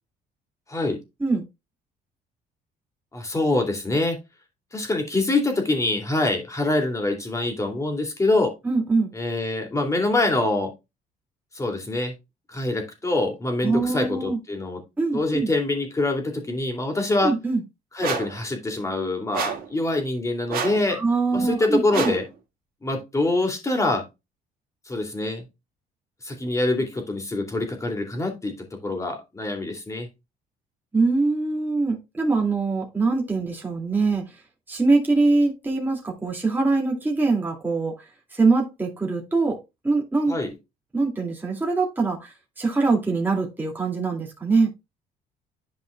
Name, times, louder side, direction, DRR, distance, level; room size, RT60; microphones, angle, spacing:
voice 1, 0.7-1.0 3.1-4.2 4.7-8.5 9.1-10.7 11.5-12.1 12.5-14.8 15.1-17.3 17.9-21.0 21.3-22.2 22.8-24.0 24.9-25.4 26.2-30.1 40.3-40.5, left 2 dB, 20° left, 2.6 m, -25 dB
voice 2, 8.6-9.1 13.6-14.4 15.0-15.5 17.2-17.6 20.9-22.1 30.9-34.2 34.7-38.0 38.3-39.6 39.8-40.4 40.9-44.7, right 3 dB, 10° right, 2.2 m, -23 dB
sound 1, 18.0-18.4 19.3-19.7 20.5-20.9 21.9-22.3, right 7 dB, 60° right, 2.1 m, -29 dB
11.0 x 5.3 x 2.3 m
cardioid pair, 110°, 17 cm